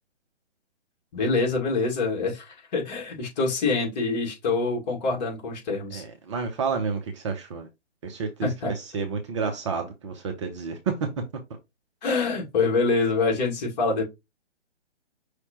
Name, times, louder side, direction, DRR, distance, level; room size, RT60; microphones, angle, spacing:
voice 1, 1.1-6.0 8.4-8.7 12.0-14.0, left 3 dB, 40° left, 2.1 m, -25 dB
voice 2, 5.9-7.7 8.0-11.1, right 5 dB, 25° right, 0.6 m, -30 dB
5.6 x 3.2 x 3.0 m
hypercardioid pair, 140°, 34 cm